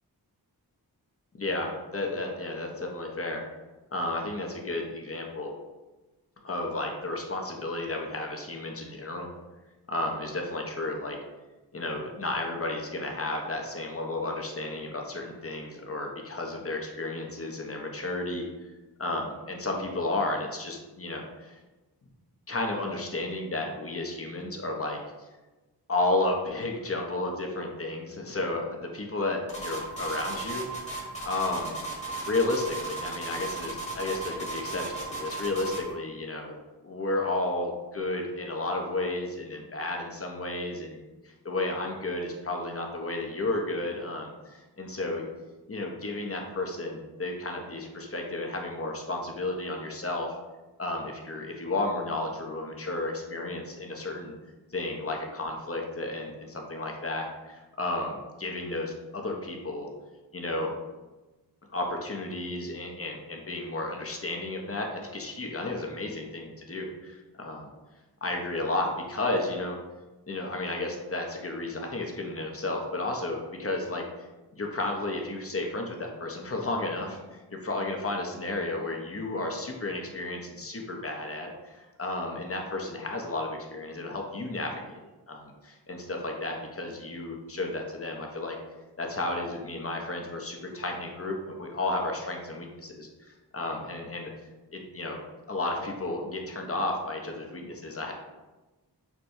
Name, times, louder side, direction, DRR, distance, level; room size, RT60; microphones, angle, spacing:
voice 1, 1.3-3.4 3.9-5.5 6.4-9.3 9.9-11.2 11.7-18.7 19.0-21.6 22.5-25.0 25.9-31.8 32.3-36.5 36.8-45.2 45.7-50.4 50.8-54.3 54.7-59.9 60.3-60.7 61.7-67.7 68.2-69.8 70.3-85.0 85.3-88.6 89.0-94.3 94.7-95.2 95.5-98.1, left 2 dB, 35° left, 1 dB, 0.7 m, -32 dB
sound 1, 29.5-35.9, right 3 dB, 15° left, 1.1 m, -36 dB
5.9 x 2.2 x 2.6 m, 1.1 s
cardioid pair, 45°, 40 cm